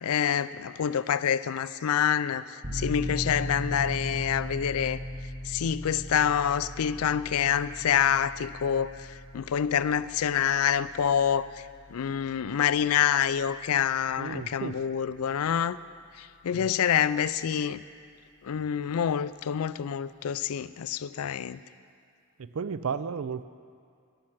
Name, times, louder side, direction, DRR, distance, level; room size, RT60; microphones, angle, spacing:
voice 1, 0.0-5.0 5.5-9.1 9.3-11.5 11.9-15.8 16.2-17.8 18.4-21.6, left 8 dB, 75° left, 16 dB, 0.4 m, -27 dB
sound 1, 2.6-15.1 15.5-15.6, equal, 30° right, 1.4 m, -39 dB
voice 2, 14.2-14.9 16.5-16.8 22.4-23.4, right 6 dB, 65° right, 14 dB, 0.4 m, -34 dB
14.0 x 11.5 x 5.9 m, 2.3 s
head